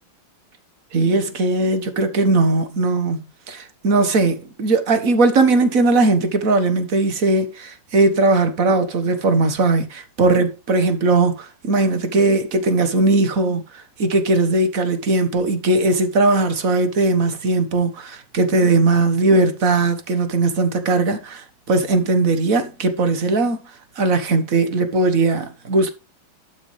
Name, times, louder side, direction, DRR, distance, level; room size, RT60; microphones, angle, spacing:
voice 1, 0.9-3.2 3.5-13.6 14.0-23.6 24.0-25.9, right 3 dB, 45° right, 1.7 m, -19 dB
12.0 x 6.3 x 3.3 m
omnidirectional pair, 2.1 m